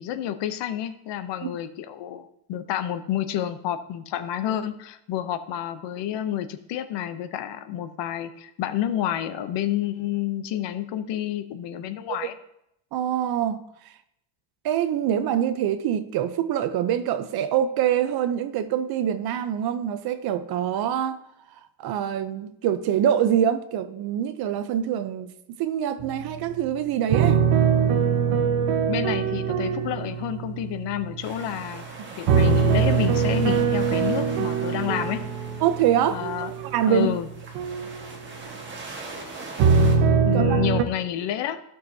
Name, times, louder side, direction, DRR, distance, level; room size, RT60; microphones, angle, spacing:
voice 1, 0.0-12.4 28.8-31.8 32.2-35.2 36.1-36.5 36.9-37.3 40.2-41.6, left 11 dB, 60° left, 0.7 m, -29 dB
voice 2, 12.9-13.6 14.6-21.2 21.8-25.3 25.6-27.4 32.1-32.2 35.6-36.2 36.6-37.1 40.3-40.6, right 10 dB, 50° right, 0.6 m, -24 dB
sound 1, 26.0-26.7 27.1-31.6 32.3-37.9 39.6-40.8, right 6 dB, 90° right, 1.0 m, -23 dB
sound 2, 31.2-40.0, right 3 dB, 25° right, 1.4 m, -41 dB
14.5 x 6.3 x 2.7 m
cardioid pair, 180°, 49 cm